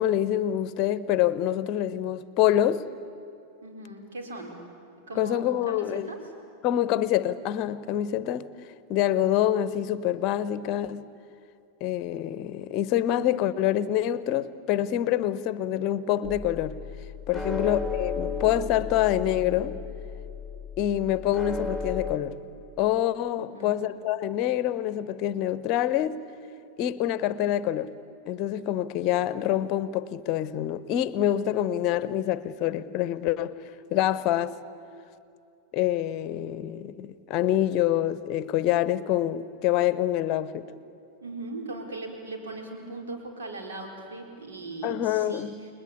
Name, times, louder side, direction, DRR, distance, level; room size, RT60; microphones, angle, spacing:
voice 1, 0.0-2.8 5.2-6.1 6.6-8.5 8.9-11.0 11.8-16.7 17.3-19.8 20.8-22.3 22.8-26.2 26.8-27.9 28.3-33.5 33.9-34.6 35.7-40.7 44.8-45.5, left 12 dB, 40° left, 0.9 m, -26 dB
voice 2, 3.6-4.6 5.1-6.2 17.3-17.6 23.4-23.8 41.2-45.5, right 2 dB, 65° right, 4.4 m, -39 dB
sound 1, 16.2-22.2, left 5 dB, 5° right, 3.0 m, -34 dB
29.5 x 21.5 x 8.4 m
figure-of-eight pair, 90°, 0 cm